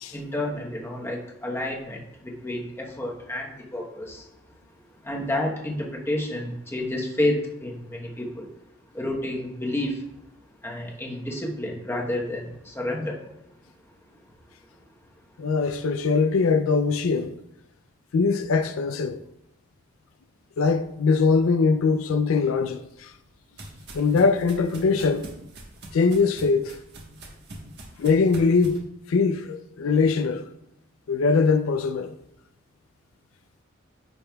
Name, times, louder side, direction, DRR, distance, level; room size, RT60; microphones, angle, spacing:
voice 1, 0.1-4.3 5.0-8.5 8.9-10.0 10.6-13.3, left 1 dB, 10° left, 1.0 m, -30 dB
voice 2, 15.4-17.3 18.1-19.2 20.6-23.1 23.9-25.3 25.9-26.8 28.0-28.8 29.1-30.4 31.1-32.1, left 4 dB, 80° left, 0.4 m, -22 dB
sound 1, 22.7-28.8, right 1 dB, 55° right, 1.3 m, -44 dB
10.0 x 5.4 x 2.3 m
head